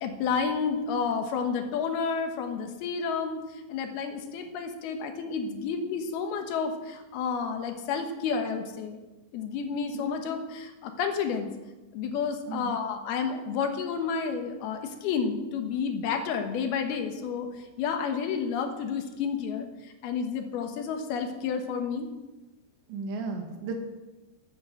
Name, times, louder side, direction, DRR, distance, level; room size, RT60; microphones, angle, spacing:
voice 1, 0.0-3.4 3.7-9.0 9.3-11.5 11.9-17.5 17.8-19.7 20.0-22.1, left 6 dB, 70° left, 5 dB, 3.0 m, -30 dB
voice 2, 22.9-23.7, right 4 dB, 90° right, 3 dB, 3.9 m, -34 dB
12.0 x 8.1 x 7.8 m, 1.1 s
omnidirectional pair, 5.0 m